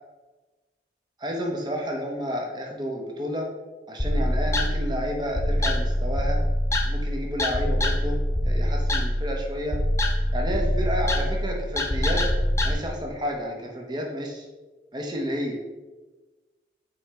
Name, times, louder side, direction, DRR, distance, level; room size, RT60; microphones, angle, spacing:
voice 1, 1.2-3.5 3.9-6.4 6.8-8.2 8.4-9.8 10.3-12.2 12.6-14.5 14.9-15.6, equal, 25° right, 1 dB, 0.9 m, -31 dB
sound 1, 4.0-12.7, equal, 15° left, 0.5 m, -25 dB
6.3 x 4.3 x 3.6 m, 1.2 s
head